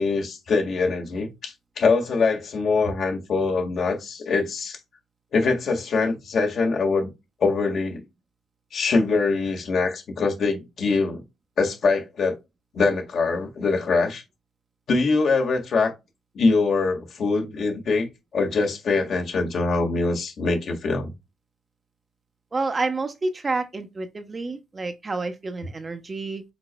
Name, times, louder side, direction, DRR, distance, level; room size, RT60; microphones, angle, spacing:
voice 1, 0.0-4.8 5.3-7.1 7.4-8.0 8.7-11.2 11.6-12.4 12.7-14.2 14.9-15.9 16.3-18.1 18.3-21.1, left 4 dB, 60° left, 1.7 m, -23 dB
voice 2, 22.5-26.4, right 3 dB, 30° right, 0.9 m, -29 dB
6.0 x 4.0 x 2.2 m
cardioid pair, 90°, 0 cm